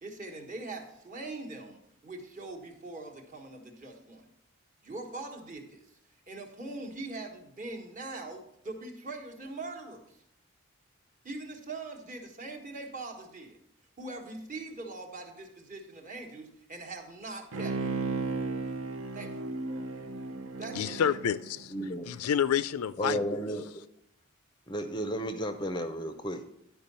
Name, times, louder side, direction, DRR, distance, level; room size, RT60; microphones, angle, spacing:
voice 1, 0.0-4.3 4.8-6.0 6.3-10.2 11.2-13.6 14.0-17.9 19.1-19.5 20.6-21.2, right 2 dB, 35° right, 1.2 m, -42 dB
Bowed string instrument, 17.5-22.1 22.5-22.6, right 3 dB, 65° right, 0.6 m, -35 dB
voice 2, 20.7-21.7 22.1-23.2, left 8 dB, 85° left, 0.4 m, -28 dB
voice 3, 21.7-22.1 23.0-23.9 24.7-26.4, equal, 20° left, 0.5 m, -33 dB
10.5 x 4.6 x 5.4 m
head